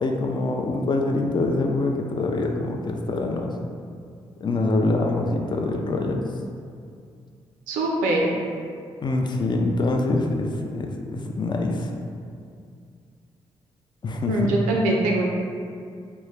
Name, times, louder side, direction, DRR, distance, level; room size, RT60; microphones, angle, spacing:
voice 1, 0.0-3.5 4.4-6.2 9.0-11.9 14.0-14.5, left 2 dB, 35° left, 2 dB, 0.4 m, -25 dB
voice 2, 7.7-8.3 14.2-15.2, right 2 dB, 85° right, -1 dB, 0.4 m, -22 dB
2.3 x 2.1 x 3.3 m, 2.3 s
hypercardioid pair, 40°, 13 cm